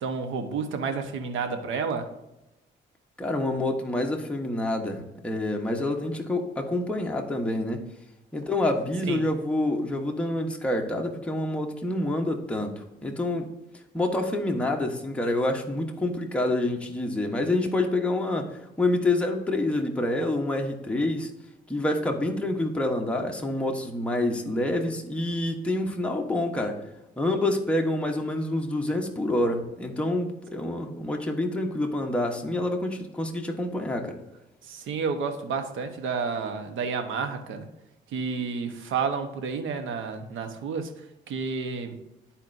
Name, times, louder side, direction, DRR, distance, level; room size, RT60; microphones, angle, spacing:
voice 1, 0.0-2.1 9.1-9.2 34.6-37.6 38.1-40.9 41.3-42.0, right 5 dB, 80° right, 7 dB, 1.0 m, -30 dB
voice 2, 3.2-7.9 8.3-13.5 13.9-21.3 21.7-26.8 27.2-34.2, left 1 dB, 5° left, 1 dB, 1.0 m, -27 dB
12.0 x 4.3 x 2.6 m, 0.91 s
cardioid pair, 90°, 20 cm